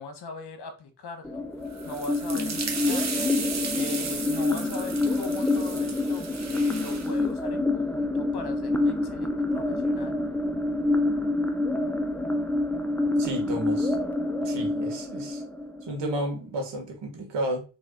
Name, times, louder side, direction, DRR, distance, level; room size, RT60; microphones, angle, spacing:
voice 1, 0.0-1.4 1.8-10.1, left 3 dB, 60° left, 1.2 m, -41 dB
sound 1, 1.2-16.2, left 2 dB, 5° left, 0.7 m, -27 dB
sound 2, 1.7-7.1, right 5 dB, 35° right, 1.0 m, -35 dB
voice 2, 13.2-13.9 14.4-15.4 15.8-17.6, right 1 dB, 70° right, 1.8 m, -32 dB
3.9 x 3.4 x 3.8 m
cardioid pair, 65°, 45 cm